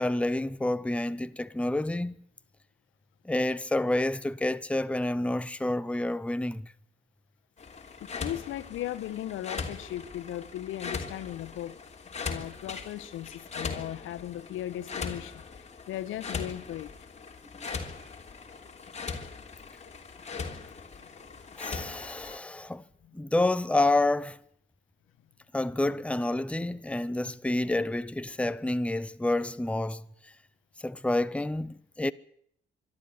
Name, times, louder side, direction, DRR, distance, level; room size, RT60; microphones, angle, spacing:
voice 1, 0.0-2.2 3.2-6.7 21.6-22.8 23.1-24.4 25.5-30.3 30.8-32.1, left 2 dB, 5° left, 0.9 m, -29 dB
sound 1, 7.6-22.4, left 4 dB, 35° left, 3.4 m, -40 dB
voice 2, 8.0-11.8 12.2-16.9 21.7-21.8 23.0-23.1, left 12 dB, 85° left, 1.3 m, -37 dB
25.0 x 12.5 x 9.7 m
cardioid pair, 90°, 20 cm